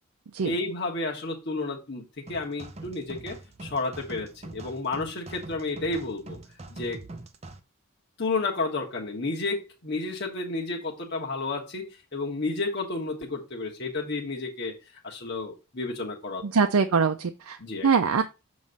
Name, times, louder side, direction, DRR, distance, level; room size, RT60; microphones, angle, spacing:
voice 1, 0.4-6.4 6.7-7.0 8.2-14.7 15.0-16.4 17.6-17.9, left 3 dB, 50° left, 0 dB, 1.3 m, -31 dB
sound 1, 2.3-7.6, right 2 dB, 30° right, 0.6 m, -43 dB
voice 2, 16.4-17.6 17.8-18.2, right 5 dB, 90° right, 6 dB, 0.5 m, -23 dB
7.3 x 3.1 x 5.2 m, 0.28 s
head